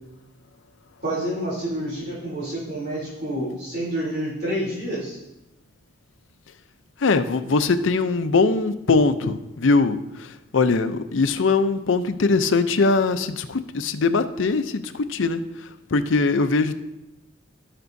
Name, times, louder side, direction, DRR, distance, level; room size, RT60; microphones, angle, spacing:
voice 1, 1.0-5.2, right 1 dB, 55° right, -9 dB, 3.2 m, -28 dB
voice 2, 7.0-16.8, left 3 dB, 75° left, 11 dB, 0.5 m, -21 dB
15.5 x 6.0 x 2.7 m, 0.94 s
head